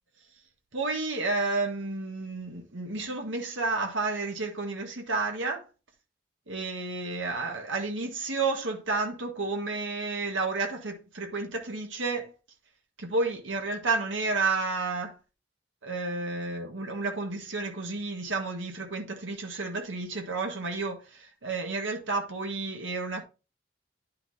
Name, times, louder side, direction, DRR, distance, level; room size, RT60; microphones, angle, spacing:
voice 1, 0.7-5.6 6.5-12.3 13.0-15.1 15.8-23.2, right 3 dB, 80° right, 1.5 m, -31 dB
10.5 x 5.6 x 2.8 m
head